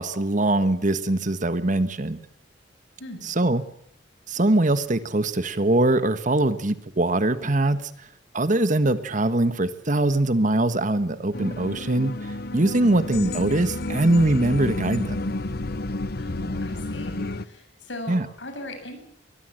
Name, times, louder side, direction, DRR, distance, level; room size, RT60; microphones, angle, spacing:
voice 1, 0.0-2.2 3.2-3.6 4.3-7.9 8.3-15.2 18.1-18.3, right 2 dB, 45° right, 12 dB, 1.4 m, -22 dB
sound 1, 11.3-17.5, left 2 dB, 55° left, 1.0 m, -30 dB
voice 2, 16.2-17.2 17.4-19.0, left 1 dB, 75° left, 6 dB, 7.4 m, -38 dB
22.0 x 21.5 x 7.8 m, 0.68 s
head